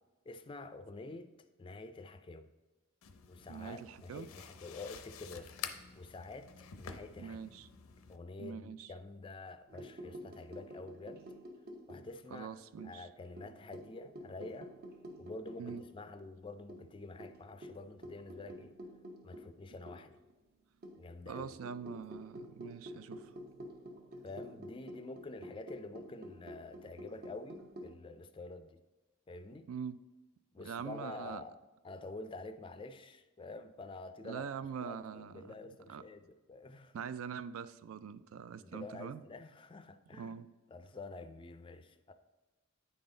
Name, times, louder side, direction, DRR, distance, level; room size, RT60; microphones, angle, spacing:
voice 1, 0.3-1.3 1.6-2.5 3.3-5.5 6.0-7.4 8.1-11.2 11.9-12.5 12.8-14.7 15.2-18.7 19.2-20.1 21.0-21.5 24.2-28.8 29.3-29.7 30.5-31.6 31.8-37.0 38.6-40.3 40.7-42.1, left 2 dB, 25° left, 10 dB, 0.3 m, -48 dB
sound 1, 3.0-8.2, left 7 dB, 85° left, 0.5 m, -49 dB
voice 2, 3.5-4.3 7.2-7.7 8.4-8.9 12.3-13.1 15.6-15.8 21.3-23.3 29.7-30.0 30.6-31.4 34.2-35.5 35.9-36.0 36.9-39.2 40.2-40.5, right 7 dB, 80° right, 15 dB, 0.3 m, -43 dB
sound 2, 9.7-12.4 12.8-15.9 16.2-16.3 16.7-20.2 20.8-28.0, equal, 45° right, 0.7 m, -50 dB
9.3 x 4.0 x 3.8 m, 1.2 s
head